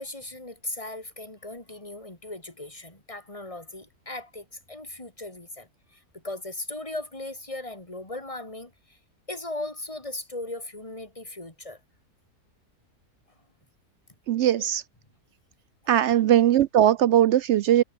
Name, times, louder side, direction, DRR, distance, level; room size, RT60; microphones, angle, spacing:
voice 1, 0.0-9.0 9.3-11.8 14.5-14.6, left 2 dB, 20° left, 3.8 m, -38 dB
voice 2, 14.3-14.8 15.9-17.8, right 11 dB, 75° right, 0.6 m, -20 dB
omnidirectional pair, 1.7 m